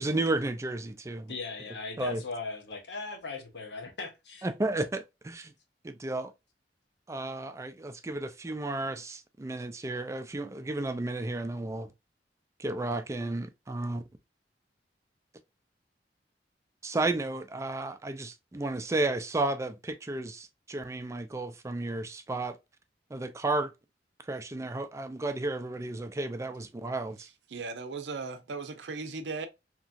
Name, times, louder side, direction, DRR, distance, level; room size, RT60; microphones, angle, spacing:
voice 1, 0.0-1.3 2.0-2.2 4.4-5.5 5.8-6.3 7.1-11.9 12.6-14.0 16.8-22.6 23.1-23.7 24.3-27.3, right 2 dB, 15° right, 0.3 m, -33 dB
voice 2, 1.3-4.5, left 3 dB, 75° left, 0.9 m, -38 dB
voice 3, 27.5-29.5, right 4 dB, 90° right, 0.5 m, -37 dB
2.9 x 2.5 x 2.4 m
head